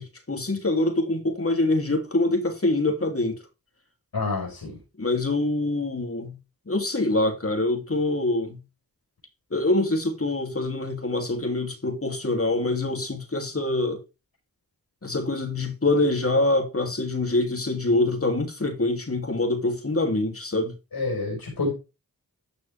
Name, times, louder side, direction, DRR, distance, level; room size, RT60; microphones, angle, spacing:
voice 1, 0.0-3.4 5.0-6.4 6.7-8.6 9.5-14.0 15.0-20.7, left 2 dB, 40° left, 3.2 m, -25 dB
voice 2, 4.1-4.7 20.9-21.7, left 3 dB, 75° left, 5.3 m, -28 dB
13.0 x 6.4 x 3.6 m
cardioid pair, 45°, 36 cm